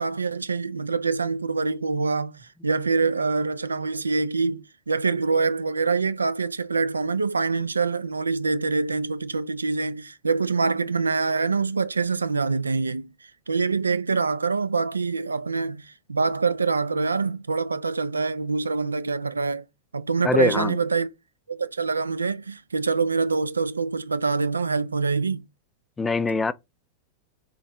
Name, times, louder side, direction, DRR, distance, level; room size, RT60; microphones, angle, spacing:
voice 1, 0.0-13.1 13.5-19.6 19.9-21.1 21.5-25.4, right 4 dB, 80° right, 0.3 m, -25 dB
voice 2, 20.2-20.8 26.0-26.5, left 3 dB, 15° left, 0.4 m, -23 dB
3.9 x 3.1 x 4.2 m
figure-of-eight pair, 90°, 0 cm